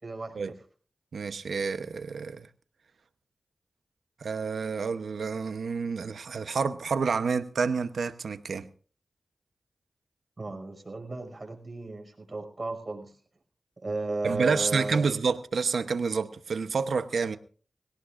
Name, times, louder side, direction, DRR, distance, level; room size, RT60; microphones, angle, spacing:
voice 1, 0.0-0.5 10.4-13.2 13.8-15.1, right 2 dB, 50° right, 5.6 m, -34 dB
voice 2, 1.1-2.5 4.2-8.7 14.2-17.4, right 5 dB, 90° right, 0.9 m, -29 dB
22.0 x 17.5 x 2.5 m
cardioid pair, 40°, 0 cm